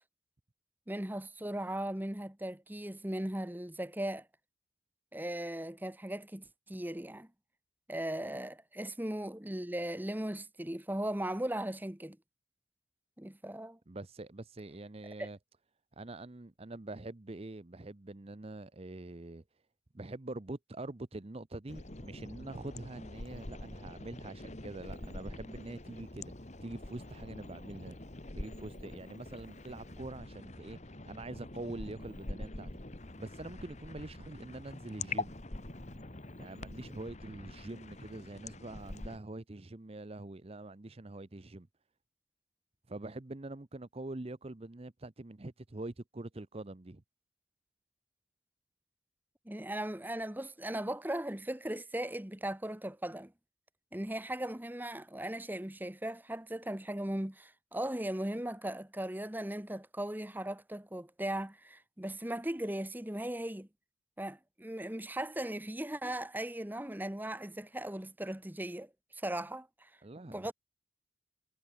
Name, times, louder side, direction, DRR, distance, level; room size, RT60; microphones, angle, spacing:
voice 1, 0.9-4.3 5.1-7.3 7.9-12.2 13.2-13.8 15.2-15.3 49.5-53.3 53.9-63.7 64.2-69.9 70.3-70.5, right 1 dB, 10° right, 1.1 m, -38 dB
voice 2, 13.9-15.4 16.0-19.4 19.9-26.3 26.6-28.0 28.3-32.7 33.2-35.3 36.4-41.7 42.9-47.0 70.0-70.5, right 2 dB, 30° right, 0.7 m, -44 dB
sound 1, 21.7-39.2, left 2 dB, 35° left, 1.6 m, -45 dB
head